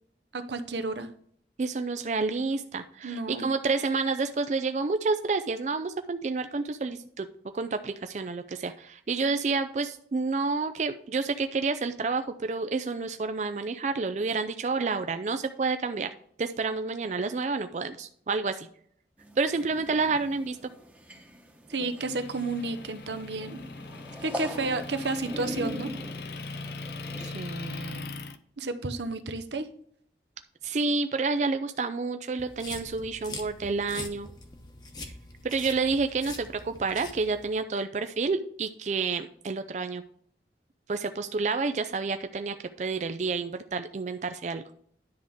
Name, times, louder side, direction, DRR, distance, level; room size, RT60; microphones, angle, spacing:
voice 1, 0.3-1.1 3.0-3.5 21.7-23.6 24.2-25.9 28.6-29.7, right 3 dB, 85° right, 9 dB, 0.8 m, -31 dB
voice 2, 1.6-7.3 7.5-16.1 16.4-18.7 19.4-20.6 27.2-28.1 30.6-34.3 35.4-40.0 40.9-44.6, right 4 dB, 40° right, 9 dB, 0.4 m, -29 dB
sound 1, 19.2-27.3, equal, 10° right, 1.0 m, -42 dB
Motor vehicle (road) / Engine, 22.0-28.4, left 3 dB, 65° left, 0.6 m, -40 dB
sound 2, 32.4-37.5, left 2 dB, 25° left, 1.0 m, -43 dB
10.5 x 3.6 x 6.1 m, 0.64 s
head